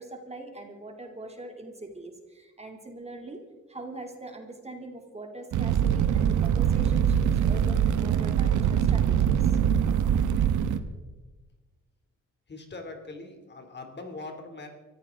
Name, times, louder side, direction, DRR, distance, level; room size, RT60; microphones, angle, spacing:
voice 1, 0.0-3.4 3.7-9.6, right 2 dB, 20° right, 3 dB, 2.8 m, -42 dB
Fire, 5.5-10.8, right 9 dB, 75° right, 1.2 m, -23 dB
voice 2, 12.5-14.7, left 3 dB, 35° left, 5 dB, 3.0 m, -41 dB
24.5 x 15.0 x 3.8 m, 1.2 s
cardioid pair, 90°, 30 cm